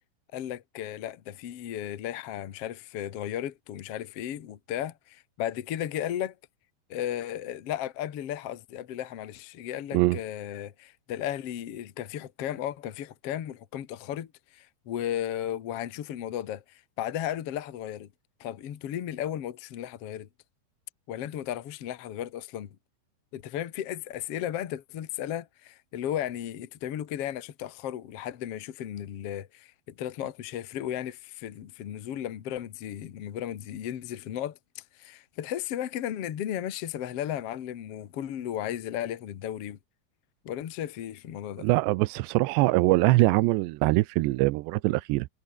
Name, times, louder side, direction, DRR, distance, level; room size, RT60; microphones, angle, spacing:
voice 1, 0.3-6.3 6.9-18.1 18.4-20.3 21.1-22.7 23.3-39.8 40.4-41.7, left 11 dB, 85° left, 1.3 m, -35 dB
voice 2, 41.6-45.3, right 20 dB, 80° right, 2.6 m, -23 dB
omnidirectional pair, 5.4 m